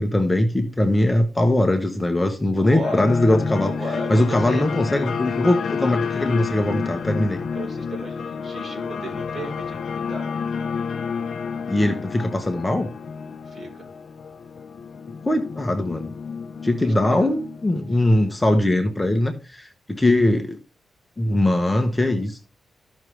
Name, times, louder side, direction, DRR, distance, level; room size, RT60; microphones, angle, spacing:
voice 1, 0.0-3.7 4.1-7.4 11.7-12.9 15.2-16.1 16.6-20.6 21.2-22.5, left 1 dB, 15° left, 5 dB, 0.9 m, -21 dB
voice 2, 2.6-3.0 3.6-4.9 7.5-10.3 13.4-13.9 16.8-17.3, right 1 dB, 35° right, 1 dB, 4.3 m, -35 dB
sound 1, 2.8-19.2, left 6 dB, 60° left, 0.6 m, -30 dB
14.0 x 6.2 x 3.3 m, 0.34 s
wide cardioid pair, 125°, 0 cm